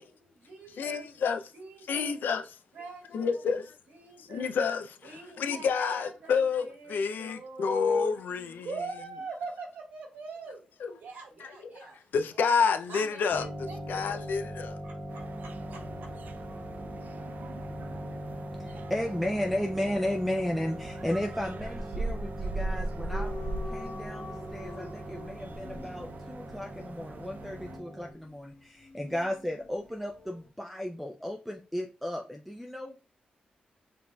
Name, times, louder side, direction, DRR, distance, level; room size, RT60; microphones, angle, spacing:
voice 1, 0.0-1.0 1.5-2.1 2.7-3.4 3.9-4.5 5.0-8.0 8.3-10.6 11.0-12.0 12.9-14.2 14.8-14.9 15.7-15.8, right 4 dB, 85° right, 1.4 m, -43 dB
voice 2, 0.8-1.4 1.9-2.4 3.1-3.7 4.2-8.7 10.8-10.9 11.4-11.5 12.1-14.8, left 5 dB, 75° left, 0.4 m, -29 dB
sound 1, 13.3-28.1, equal, 35° right, 1.0 m, -41 dB
sound 2, 15.1-27.8, right 2 dB, 65° right, 0.4 m, -40 dB
voice 3, 18.6-23.3 23.7-33.0, left 1 dB, ahead, 0.5 m, -34 dB
sound 3, 23.1-29.9 30.1-30.4, left 2 dB, 50° left, 1.0 m, -45 dB
5.1 x 2.5 x 2.2 m
supercardioid pair, 50°, 3 cm